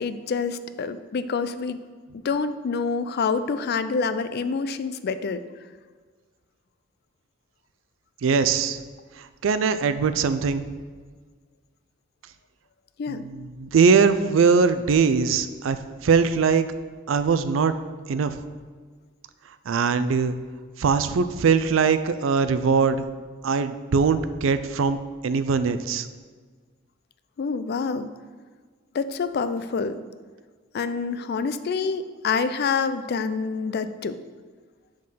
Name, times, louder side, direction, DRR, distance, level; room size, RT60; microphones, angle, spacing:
voice 1, 0.0-1.8 2.2-5.4 13.0-13.2 27.4-28.1 28.9-30.0 30.7-34.2, left 5 dB, 55° left, 12 dB, 0.4 m, -27 dB
voice 2, 8.2-8.8 9.2-10.6 13.1-16.7 17.1-17.7 18.1-18.3 19.7-20.4 20.8-23.0 23.4-26.1, right 5 dB, 70° right, 11 dB, 0.4 m, -21 dB
7.4 x 3.9 x 5.6 m, 1.5 s
head